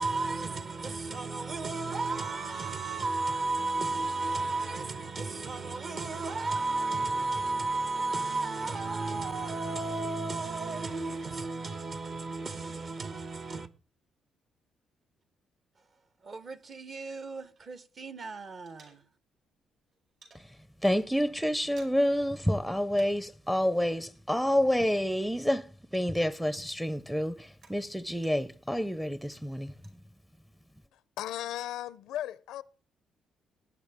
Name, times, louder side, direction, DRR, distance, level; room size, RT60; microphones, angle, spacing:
voice 1, 0.0-13.7 16.2-19.0, right 3 dB, 45° right, 1.0 m, -33 dB
sound 1, 2.5-4.8 5.3-7.5 8.0-10.2 10.7-12.9, right 3 dB, 80° right, 6.1 m, -54 dB
sound 2, 16.6-18.1 18.3-19.5 19.7-20.5 20.9-21.1 21.3-22.2 22.5-23.4 23.6-25.9 26.3-28.6 29.1-30.0, right 4 dB, 65° right, 5.1 m, -61 dB
voice 2, 20.3-29.7, equal, 5° right, 0.5 m, -29 dB
voice 3, 30.9-32.6, left 12 dB, 90° left, 0.5 m, -36 dB
18.0 x 9.6 x 3.6 m
cardioid pair, 90°, 0 cm